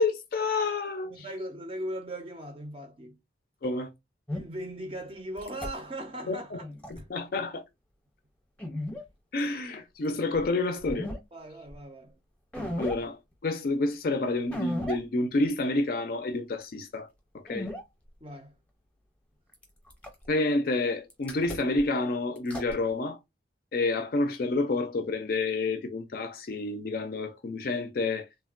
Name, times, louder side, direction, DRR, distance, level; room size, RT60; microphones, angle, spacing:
voice 1, 0.0-1.2 3.6-3.9 6.3-6.6 7.1-7.6 9.3-11.1 12.8-17.1 17.3-17.7 20.3-23.2 23.7-28.3, left 2 dB, 50° left, 0.4 m, -29 dB
voice 2, 1.0-3.2 4.3-6.6 7.0-7.1 10.1-10.2 11.3-12.1 18.2-18.5, right 1 dB, 30° right, 0.4 m, -39 dB
sound 1, 4.3-4.4 5.4-5.7 6.6-7.0 8.6-9.0 10.4-10.5 10.8-11.2 11.7-11.8 12.5-13.0 14.5-15.0 15.5-15.6 17.5-17.8 19.5-20.3 21.1-21.9 22.4-22.8, left 1 dB, 5° left, 0.7 m, -35 dB
3.1 x 2.1 x 2.3 m
head